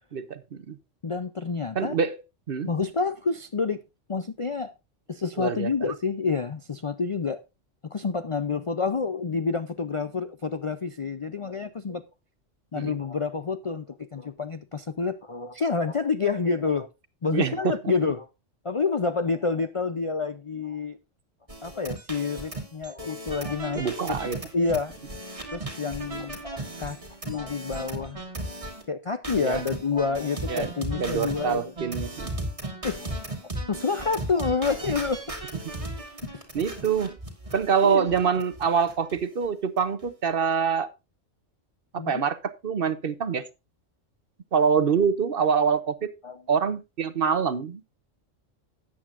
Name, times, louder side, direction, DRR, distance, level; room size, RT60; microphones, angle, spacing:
voice 1, 0.1-0.8 1.7-2.2 2.5-2.7 5.4-5.7 12.7-12.9 17.3-17.6 23.7-24.4 29.4-29.6 30.5-30.7 31.0-32.3 36.5-37.1 37.5-40.9 41.9-42.4 42.6-43.4 44.5-46.1 46.5-47.8, right 6 dB, 55° right, 0.9 m, -25 dB
voice 2, 1.0-2.0 2.6-3.8 4.1-4.7 5.1-7.4 7.8-12.0 12.7-16.9 17.2-18.3 18.6-21.0 21.6-23.8 24.5-24.9 25.5-27.0 27.2-28.2 28.9-31.6 32.8-33.2 33.7-35.2 37.8-38.3 42.0-42.2 46.2-46.4, left 4 dB, 45° left, 0.4 m, -28 dB
sound 1, 21.5-28.8 29.2-39.2 39.4-39.5 39.8-40.0, right 1 dB, 25° right, 2.3 m, -36 dB
13.5 x 8.9 x 2.5 m
omnidirectional pair, 1.3 m